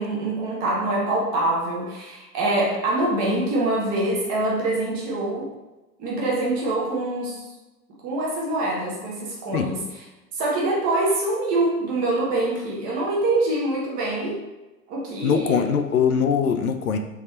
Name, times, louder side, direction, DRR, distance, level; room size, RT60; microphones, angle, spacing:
voice 1, 0.0-5.5 6.0-7.5 8.0-9.8 10.3-14.4 14.9-15.6, right 2 dB, 20° right, -4 dB, 0.6 m, -24 dB
voice 2, 15.2-17.0, left 7 dB, 65° left, 7 dB, 0.5 m, -22 dB
3.5 x 3.0 x 3.0 m, 1.1 s
figure-of-eight pair, 110°, 48 cm